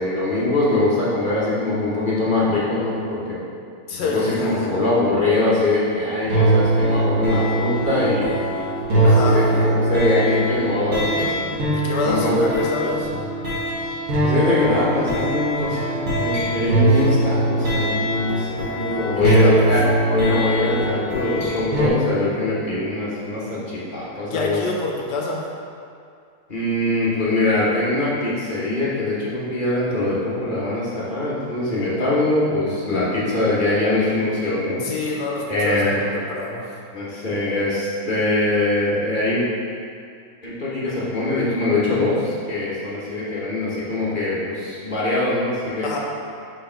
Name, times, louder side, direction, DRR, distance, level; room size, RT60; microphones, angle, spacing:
voice 1, 0.0-3.4 3.9-8.3 8.9-12.4 14.2-19.8 20.1-24.6 26.5-34.8 35.5-36.0 36.9-39.4 40.4-46.0, left 2 dB, 35° left, -9 dB, 0.8 m, -22 dB
voice 2, 3.9-4.7 9.0-9.5 11.7-13.1 19.1-19.7 24.3-25.6 34.8-36.8 45.8-46.0, left 2 dB, 65° left, -1 dB, 1.2 m, -27 dB
sound 1, 6.3-21.9, right 1 dB, 45° right, 1.4 m, -21 dB
4.7 x 4.6 x 4.5 m, 2.3 s
omnidirectional pair, 2.2 m